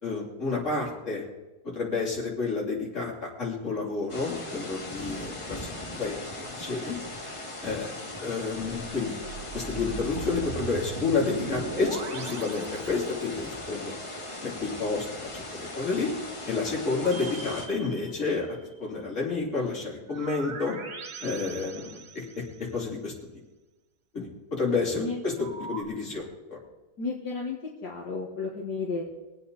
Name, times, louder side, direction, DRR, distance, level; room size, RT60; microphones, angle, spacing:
voice 1, 0.0-1.3 1.7-7.0 7.6-9.2 9.5-14.0 14.4-15.1 15.3-16.1 16.5-18.5 18.8-20.8 21.2-23.1 24.1-26.6, left 4 dB, 40° left, -3 dB, 3.7 m, -30 dB
sound 1, 4.1-17.7, left 1 dB, 15° left, 1.8 m, -39 dB
sound 2, 9.0-13.6 16.9-18.7 20.1-22.7 25.4-25.8, right 4 dB, 45° right, 1.4 m, -40 dB
voice 2, 27.0-27.6 27.8-29.2, left 3 dB, 65° left, -3 dB, 2.2 m, -32 dB
23.5 x 8.5 x 4.1 m, 1.1 s
omnidirectional pair, 1.9 m